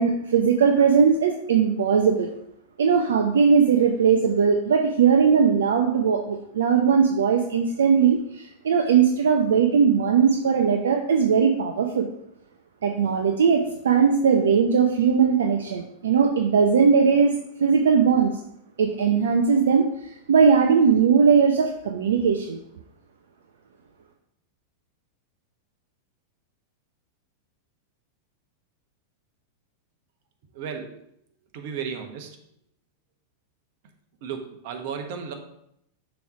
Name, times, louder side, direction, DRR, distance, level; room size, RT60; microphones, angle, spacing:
voice 1, 0.0-2.3 2.8-12.1 12.8-18.3 18.8-22.6, right 6 dB, 80° right, 4 dB, 0.6 m, -19 dB
voice 2, 30.5-31.0 31.5-32.4 34.2-35.3, right 6 dB, 60° right, 5 dB, 1.3 m, -34 dB
7.0 x 3.3 x 5.7 m, 0.75 s
hypercardioid pair, 105°, 0 cm